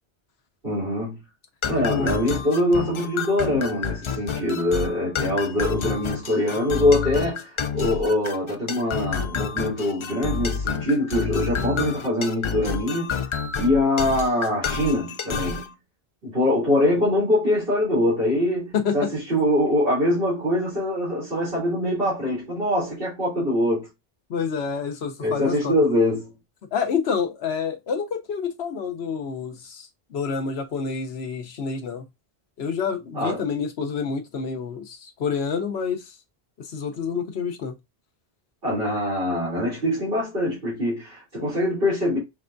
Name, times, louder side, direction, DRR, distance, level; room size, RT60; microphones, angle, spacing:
voice 1, 0.6-1.2 1.7-13.2 13.6-15.6 16.2-23.9 25.2-26.3 33.1-33.4 38.6-42.2, left 1 dB, 60° right, 3.0 m, -23 dB
sound 1, 1.6-15.7, left 6 dB, 55° left, 0.3 m, -29 dB
voice 2, 1.9-2.2 18.7-19.1 24.3-25.7 26.7-32.0 32.6-36.2 36.6-37.7, left 6 dB, 85° left, 1.1 m, -28 dB
5.9 x 3.3 x 2.6 m
omnidirectional pair, 1.1 m